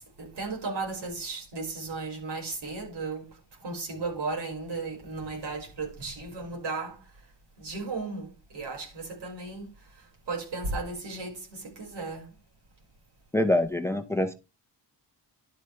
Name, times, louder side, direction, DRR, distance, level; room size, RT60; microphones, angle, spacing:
voice 1, 0.2-3.2 3.6-7.0 7.6-8.3 8.5-9.7 10.3-12.3, right 3 dB, 75° right, 5.4 m, -35 dB
voice 2, 13.3-14.3, left 1 dB, 5° left, 0.7 m, -25 dB
11.5 x 9.0 x 3.3 m
wide cardioid pair, 165°, 42 cm